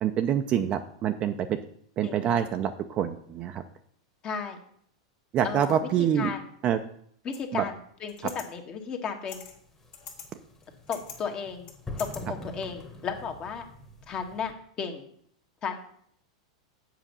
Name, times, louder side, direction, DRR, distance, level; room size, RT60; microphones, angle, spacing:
voice 1, 0.0-1.6 2.0-3.6 5.3-6.3 6.6-6.8 7.5-7.6, right 9 dB, 35° right, 7 dB, 0.5 m, -26 dB
voice 2, 4.2-4.6 5.4-5.9 6.1-6.5 7.2-9.4 10.9-11.7 12.0-13.7 14.1-15.1 15.6-15.8, left 6 dB, 35° left, 4 dB, 1.4 m, -34 dB
sound 1, 7.3-7.4 8.1-8.4 9.3-9.6 9.9-10.3 10.6-11.2 11.7-12.2, left 7 dB, 50° left, 2.0 m, -43 dB
sound 2, 9.4-14.5, left 2 dB, 15° left, 1.5 m, -44 dB
7.5 x 5.1 x 6.7 m, 0.64 s
hypercardioid pair, 110°, 3 cm